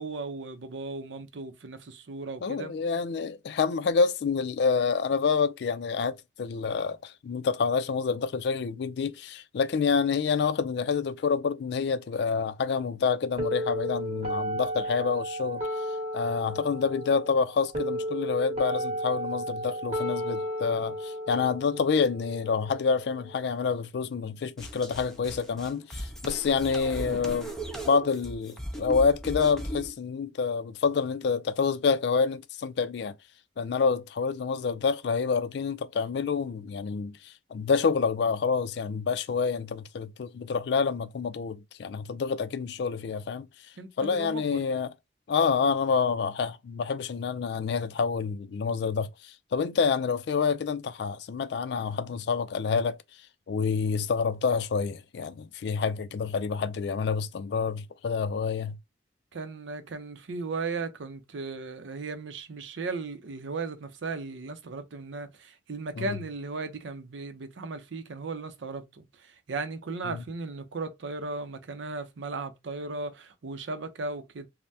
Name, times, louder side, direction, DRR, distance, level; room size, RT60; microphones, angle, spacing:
voice 1, 0.0-2.7 43.8-44.6 59.3-74.5, right 3 dB, 85° right, 0.6 m, -36 dB
voice 2, 2.4-15.6 16.1-27.5 27.8-33.2 33.6-43.5 44.0-44.9 45.3-53.0 53.5-58.8 66.0-66.2 70.1-70.2, left 5 dB, 65° left, 0.3 m, -28 dB
sound 1, 13.4-23.4, equal, 35° right, 1.1 m, -33 dB
sound 2, 24.6-29.9, right 1 dB, 5° left, 0.5 m, -37 dB
3.3 x 2.1 x 2.6 m
head